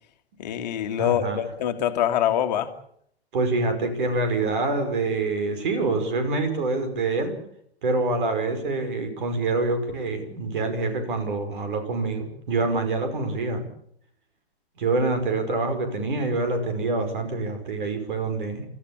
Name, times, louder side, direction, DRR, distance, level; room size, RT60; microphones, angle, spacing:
voice 1, 0.4-2.7, left 10 dB, 40° left, 6 dB, 2.0 m, -24 dB
voice 2, 1.0-1.4 3.3-7.4 7.8-13.6 14.8-18.7, right 3 dB, 50° right, 8 dB, 5.6 m, -26 dB
30.0 x 14.5 x 8.6 m, 0.68 s
figure-of-eight pair, 115°, 32 cm